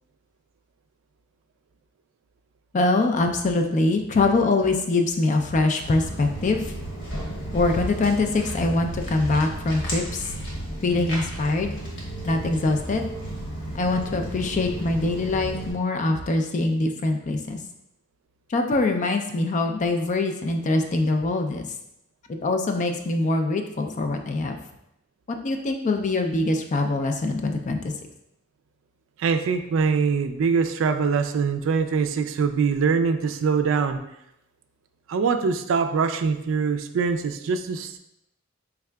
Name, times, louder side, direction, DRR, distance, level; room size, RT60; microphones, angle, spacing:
voice 1, 2.7-6.6 7.5-10.3 10.8-11.7 12.2-13.0 13.7-17.6 18.5-21.7 22.3-24.6 25.3-27.9, left 2 dB, 40° left, 5 dB, 0.4 m, -23 dB
Walk footsteps, 5.8-15.7, right 1 dB, 65° left, 1.2 m, -33 dB
voice 2, 29.2-34.0 35.1-38.0, right 5 dB, 70° right, 8 dB, 0.3 m, -23 dB
4.7 x 3.4 x 2.2 m, 0.83 s
head